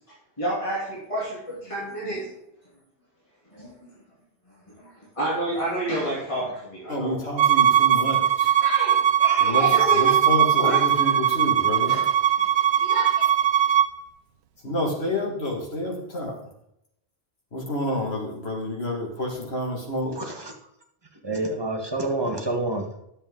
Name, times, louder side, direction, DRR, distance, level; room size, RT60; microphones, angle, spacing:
voice 1, 0.4-2.3 3.5-3.9 4.5-7.2 8.4-10.2 10.5-11.2 11.9-12.1 12.3-12.5 12.8-13.2, right 1 dB, 30° left, -8 dB, 3.0 m, -30 dB
voice 2, 6.9-8.5 9.4-9.7 9.9-11.9 14.6-16.3 17.5-20.2, left 1 dB, 80° left, 0 dB, 2.3 m, -29 dB
Bowed string instrument, 7.4-13.9, right 10 dB, 90° right, 0.9 m, -20 dB
voice 3, 20.2-20.5 21.2-22.9, right 2 dB, 25° right, 2 dB, 1.3 m, -28 dB
9.9 x 7.0 x 3.8 m, 0.77 s
omnidirectional pair, 1.1 m